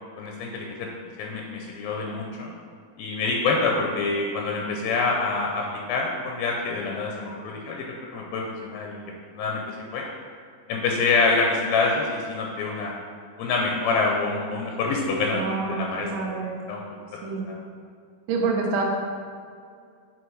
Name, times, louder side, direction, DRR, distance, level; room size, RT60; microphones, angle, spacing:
voice 1, 0.2-0.9 1.2-2.5 3.0-9.0 9.3-10.0 10.7-12.9 13.4-16.2 16.7-16.8 17.5-17.6, left 3 dB, 80° left, 0 dB, 2.4 m, -26 dB
voice 2, 15.3-16.6 17.2-17.5 18.3-18.8, right 4 dB, 85° right, 0 dB, 2.9 m, -27 dB
8.1 x 4.8 x 4.6 m, 2.2 s
omnidirectional pair, 4.4 m